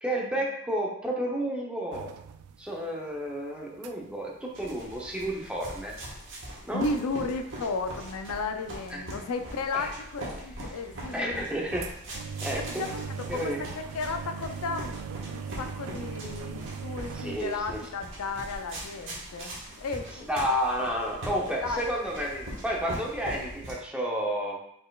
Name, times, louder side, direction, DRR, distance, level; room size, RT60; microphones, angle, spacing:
voice 1, 0.0-2.1 2.6-5.9 6.6-6.8 8.9-9.0 9.7-9.9 11.1-11.8 12.4-12.8 13.3-13.6 17.1-17.8 20.3-24.6, equal, 5° right, -2 dB, 0.7 m, -31 dB
sound 1, 1.9-2.9 3.2-4.3 4.6-4.7 4.9-5.5 6.0-7.6 7.8-8.7 9.3-9.9 10.4-17.4, right 6 dB, 80° right, 0.3 m, -40 dB
sound 2, 4.5-23.7, right 1 dB, 60° right, 1.4 m, -41 dB
voice 2, 6.7-11.5 12.8-20.3 21.5-21.8, left 3 dB, 85° left, 7 dB, 0.4 m, -34 dB
5.0 x 4.2 x 2.3 m, 0.75 s
head